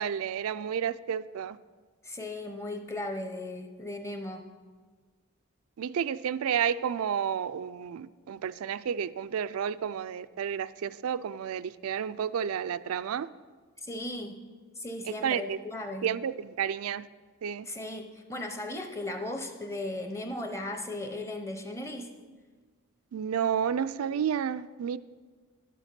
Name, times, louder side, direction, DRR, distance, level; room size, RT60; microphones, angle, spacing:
voice 1, 0.0-1.6 5.8-13.3 15.2-15.6 16.0-17.1 17.4-17.7 23.1-25.0, right 8 dB, 80° right, 16 dB, 0.4 m, -31 dB
voice 2, 2.0-4.5 13.8-14.4 14.8-16.1 17.7-22.1, left 1 dB, 15° left, 5 dB, 0.6 m, -37 dB
10.5 x 7.0 x 5.9 m, 1.5 s
head